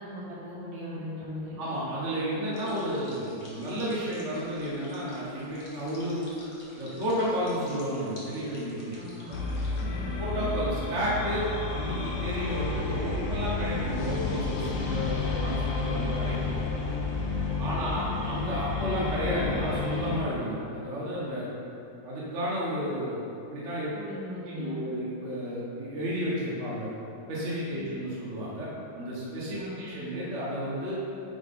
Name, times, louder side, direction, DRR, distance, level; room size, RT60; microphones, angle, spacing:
voice 1, 0.0-1.6 8.9-9.4 9.9-10.1 17.6-17.9 23.9-24.9 29.5-29.8, left 1 dB, 55° right, -8 dB, 2.6 m, -39 dB
voice 2, 1.6-6.3 6.8-9.0 9.8-16.6 17.6-21.5 22.0-23.2 23.5-23.9 24.5-26.9 27.3-31.0, equal, 40° right, -7 dB, 1.1 m, -32 dB
sound 1, 2.5-9.8, left 1 dB, 40° left, 0.9 m, -51 dB
sound 2, 9.3-20.2, left 4 dB, 85° left, 2.3 m, -31 dB
9.0 x 4.5 x 4.3 m, 2.9 s
omnidirectional pair, 3.3 m